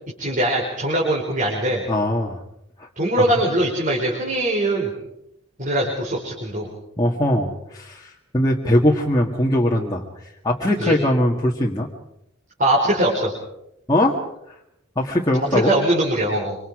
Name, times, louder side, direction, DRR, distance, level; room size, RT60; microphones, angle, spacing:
voice 1, 0.2-1.8 3.0-4.9 5.6-6.7 10.8-11.0 12.6-13.3 15.5-16.6, right 1 dB, 40° right, -3 dB, 4.6 m, -21 dB
voice 2, 1.9-2.4 2.8-2.9 3.2-3.3 7.0-11.9 13.9-14.2 15.0-15.7, left 1 dB, 20° left, -2 dB, 1.9 m, -21 dB
26.0 x 25.5 x 5.0 m, 0.80 s
head